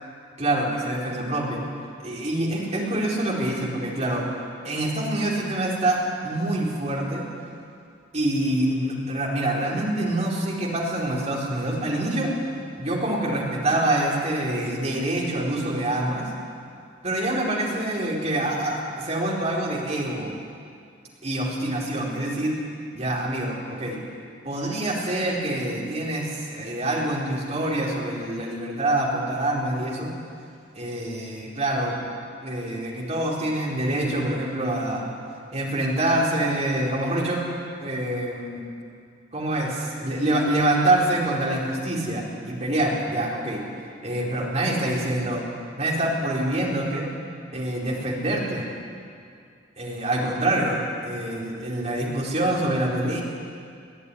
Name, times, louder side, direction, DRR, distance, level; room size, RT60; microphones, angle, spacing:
voice 1, 0.4-1.7 2.0-4.2 4.6-7.2 8.1-12.3 12.8-16.2 17.0-20.4 21.2-22.5 22.9-24.0 24.4-30.1 30.7-32.0 32.4-35.1 35.5-37.4 37.8-38.6 39.3-43.6 44.0-45.5 45.8-47.1 47.5-48.7 49.8-53.2, right 1 dB, 35° right, -3 dB, 4.4 m, -26 dB
21.0 x 14.0 x 10.0 m, 2.3 s
head